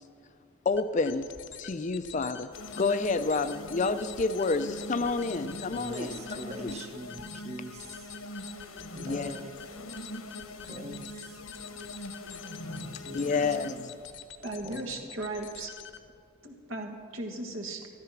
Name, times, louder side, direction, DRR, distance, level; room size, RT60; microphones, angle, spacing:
sound 1, 0.7-16.2, left 9 dB, 55° left, 0.8 m, -47 dB
voice 1, 0.7-1.3 1.6-2.5 2.8-6.1 6.5-6.8 9.0-9.4 13.1-13.9, left 3 dB, 35° left, 11 dB, 0.4 m, -29 dB
sound 2, 2.5-14.1, left 1 dB, 85° left, 1.2 m, -42 dB
voice 2, 5.7-8.1 8.9-9.6 10.6-11.4 13.0-13.9 14.6-15.1, right 1 dB, 30° right, 5 dB, 1.0 m, -43 dB
voice 3, 14.4-15.7 16.4-17.9, right 2 dB, 70° right, 3 dB, 1.8 m, -37 dB
13.5 x 13.0 x 5.9 m, 2.4 s
head